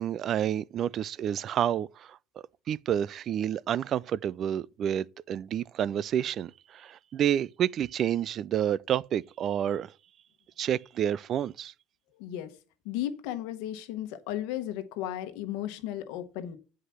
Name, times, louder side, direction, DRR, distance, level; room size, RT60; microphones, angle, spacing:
voice 1, 0.0-2.2 2.7-9.9 10.6-11.7, right 10 dB, 50° right, 0.4 m, -29 dB
voice 2, 12.2-12.5 12.8-16.6, left 12 dB, 75° left, 1.3 m, -35 dB
8.1 x 4.9 x 5.7 m
supercardioid pair, 85°, 0 cm